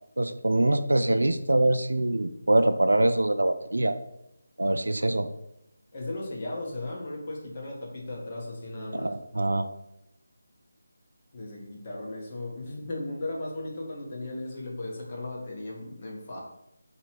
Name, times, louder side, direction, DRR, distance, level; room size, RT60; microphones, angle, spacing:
voice 1, 0.2-4.0 4.6-5.3 8.9-9.7, right 1 dB, 80° right, 9 dB, 0.3 m, -24 dB
voice 2, 5.9-9.1 11.3-16.4, left 2 dB, 35° left, -3 dB, 1.1 m, -36 dB
3.1 x 2.9 x 4.4 m, 0.83 s
figure-of-eight pair, 160°, 0 cm